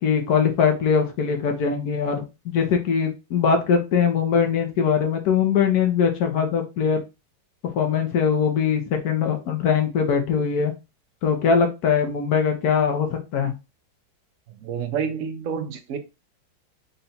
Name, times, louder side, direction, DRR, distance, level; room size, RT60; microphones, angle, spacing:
voice 1, 0.0-7.0 7.6-10.7 11.2-13.5, left 6 dB, 65° left, 4 dB, 1.1 m, -21 dB
voice 2, 14.5-16.0, right 7 dB, 70° right, 6 dB, 0.8 m, -29 dB
4.0 x 2.3 x 4.0 m, 0.27 s
omnidirectional pair, 2.1 m